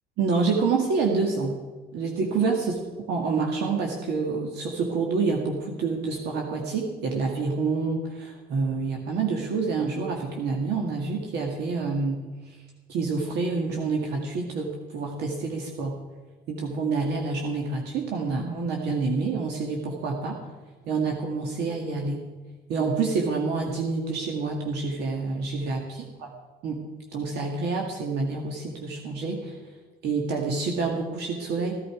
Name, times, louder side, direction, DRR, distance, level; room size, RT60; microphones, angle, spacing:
voice 1, 0.2-1.6 1.9-2.7 3.1-12.6 12.9-15.9 16.5-20.4 20.9-22.3 22.7-25.8 26.2-26.3 26.6-26.8 27.1-29.6 30.0-31.7, right 4 dB, 80° right, 1 dB, 1.8 m, -27 dB
15.5 x 11.5 x 4.8 m, 1.3 s
cardioid pair, 110°, 17 cm